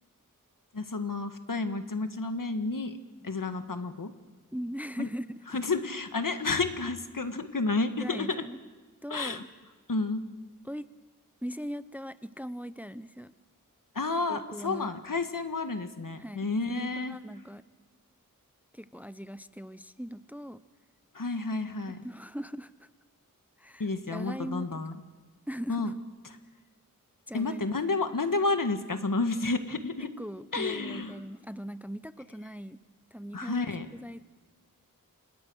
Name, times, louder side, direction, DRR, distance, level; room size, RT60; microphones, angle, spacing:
voice 1, 0.7-3.0 3.2-4.1 5.0-5.1 5.5-8.5 9.1-9.4 9.9-10.2 13.9-17.2 21.1-22.0 23.8-25.0 25.7-25.9 27.3-30.1 30.5-31.1 33.3-33.9, left 3 dB, 70° left, 8 dB, 1.8 m, -30 dB
voice 2, 4.5-5.6 8.0-8.6 9.0-9.5 10.6-10.9 11.4-13.3 14.3-14.9 16.2-17.7 18.7-20.6 22.0-22.9 23.6-24.8 25.5-25.9 27.3-27.7 30.0-32.8 33.1-34.2, equal, 5° right, 14 dB, 0.7 m, -40 dB
27.5 x 26.5 x 6.4 m, 1.4 s
wide cardioid pair, 55°, 34 cm